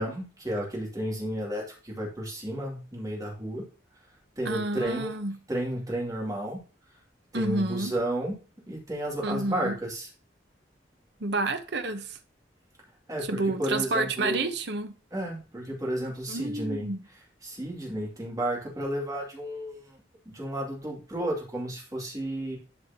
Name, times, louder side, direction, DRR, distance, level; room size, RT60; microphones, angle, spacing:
voice 1, 0.0-3.7 4.4-5.1 5.5-6.6 7.3-8.4 8.7-10.1 13.1-14.5 15.1-20.0 20.3-22.6, right 1 dB, 20° right, 2.5 m, -32 dB
voice 2, 4.4-5.3 7.3-7.9 9.2-9.7 11.2-12.1 13.3-14.9 16.3-17.0, right 2 dB, 65° right, 0.9 m, -29 dB
12.0 x 4.8 x 2.8 m
head